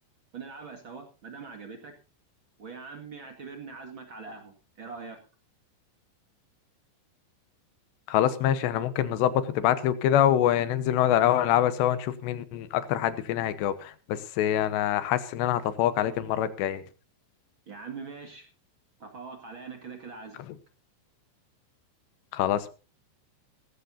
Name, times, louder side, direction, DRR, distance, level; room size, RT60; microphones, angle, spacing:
voice 1, 0.3-1.9 2.6-5.2 17.7-18.5 19.0-20.4, right 5 dB, 45° right, 4 dB, 1.6 m, -42 dB
voice 2, 8.1-16.8 22.3-22.7, left 11 dB, 80° left, 13 dB, 3.1 m, -25 dB
18.5 x 15.0 x 2.7 m, 0.32 s
omnidirectional pair, 5.3 m